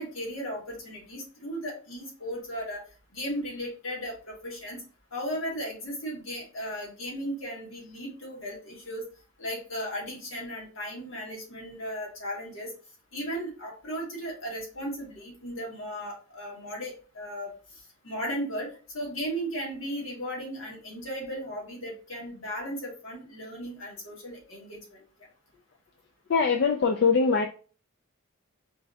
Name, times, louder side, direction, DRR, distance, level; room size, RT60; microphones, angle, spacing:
voice 1, 0.0-2.8 3.1-4.8 5.1-9.0 9.4-12.7 13.1-25.0, equal, 80° left, -2 dB, 1.8 m, -36 dB
voice 2, 26.3-27.5, left 5 dB, 55° left, 5 dB, 0.3 m, -22 dB
4.6 x 3.1 x 2.7 m, 0.38 s
head